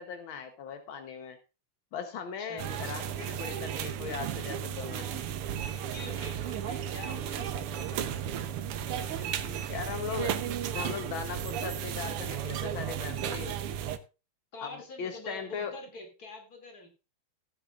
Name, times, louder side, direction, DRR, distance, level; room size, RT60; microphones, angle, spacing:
voice 1, 0.0-1.4 1.9-5.2 9.7-13.6 14.6-15.7, left 6 dB, 70° left, 7 dB, 1.2 m, -39 dB
voice 2, 2.4-3.2 5.9-9.6 14.5-16.9, left 2 dB, 30° left, 4 dB, 2.7 m, -46 dB
sound 1, 2.6-14.0, right 9 dB, 80° right, 1.3 m, -34 dB
16.5 x 9.0 x 2.5 m, 0.29 s
omnidirectional pair, 3.7 m